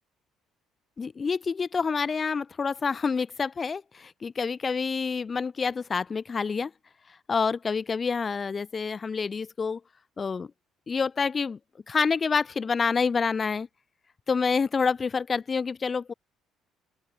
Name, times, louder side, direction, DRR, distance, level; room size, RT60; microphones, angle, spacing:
voice 1, 1.0-6.7 7.3-9.8 10.2-10.5 10.9-11.6 11.9-13.7 14.3-16.1, left 5 dB, 35° left, 0.8 m, -27 dB
open air
supercardioid pair, 65°, 0 cm